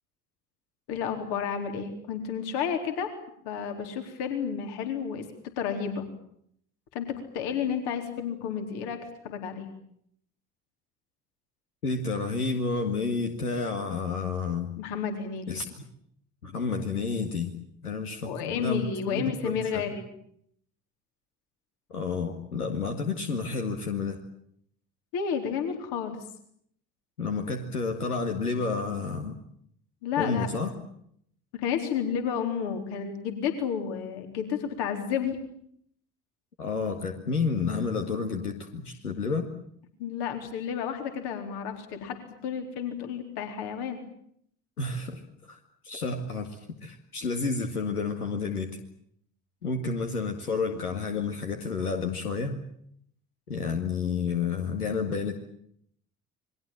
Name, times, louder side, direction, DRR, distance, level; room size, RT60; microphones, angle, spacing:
voice 1, 0.9-3.1 3.4-5.2 5.6-6.1 6.9-7.1 7.3-9.0 9.2-9.7 14.8-15.5 18.2-20.1 25.1-26.2 30.0-30.5 31.5-35.4 40.0-42.2 42.4-44.0, left 7 dB, 60° left, 5 dB, 4.2 m, -31 dB
voice 2, 11.8-14.7 15.5-15.7 16.4-17.6 17.8-19.9 21.9-24.2 27.2-29.4 30.2-30.7 36.6-39.5 44.8-45.6 45.8-48.8 49.6-52.6 53.5-55.4, left 4 dB, 80° left, 4 dB, 2.1 m, -30 dB
29.0 x 22.5 x 7.5 m, 0.68 s
figure-of-eight pair, 55°, 45 cm